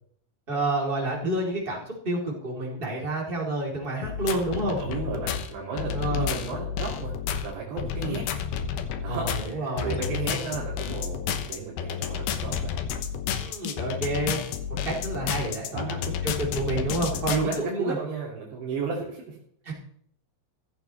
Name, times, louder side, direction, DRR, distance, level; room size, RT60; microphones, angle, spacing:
voice 1, 0.5-4.8 5.9-6.3 8.0-8.2 9.1-10.0 13.4-14.4 14.8-18.0 19.6-19.7, right 2 dB, 15° right, -3 dB, 3.2 m, -29 dB
sound 1, 4.0-17.6, left 8 dB, 75° left, 2.5 m, -31 dB
voice 2, 4.8-7.1 7.4-8.2 9.0-12.7 15.7-16.0 17.1-19.4, right 4 dB, 65° right, -5 dB, 4.9 m, -33 dB
15.5 x 14.5 x 3.4 m, 0.65 s
omnidirectional pair, 5.6 m